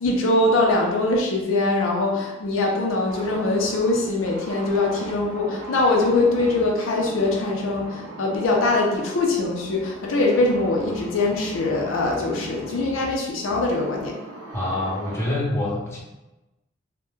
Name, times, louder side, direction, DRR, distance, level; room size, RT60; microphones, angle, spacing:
voice 1, 0.0-14.1, left 2 dB, 75° left, 0 dB, 0.5 m, -22 dB
sound 1, 3.1-15.3, right 1 dB, 65° right, 0.5 m, -39 dB
voice 2, 14.5-16.0, left 1 dB, 15° left, -6 dB, 0.6 m, -26 dB
2.1 x 2.1 x 3.0 m, 1.0 s
head